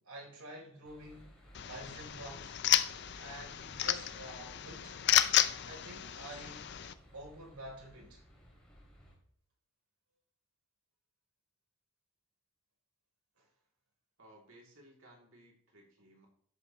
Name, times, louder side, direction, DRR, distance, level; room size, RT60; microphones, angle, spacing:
voice 1, 0.0-1.3 1.7-2.6 3.2-5.0 5.7-6.8 7.1-8.2, right 1 dB, 80° right, 0 dB, 3.7 m, -48 dB
sound 1, 0.9-9.2, equal, 5° left, 2.8 m, -59 dB
sound 2, 1.5-6.9, left 11 dB, 50° left, 0.5 m, -32 dB
voice 2, 14.2-16.3, right 1 dB, 65° right, -1 dB, 3.1 m, -59 dB
13.0 x 10.0 x 3.2 m, 0.63 s
head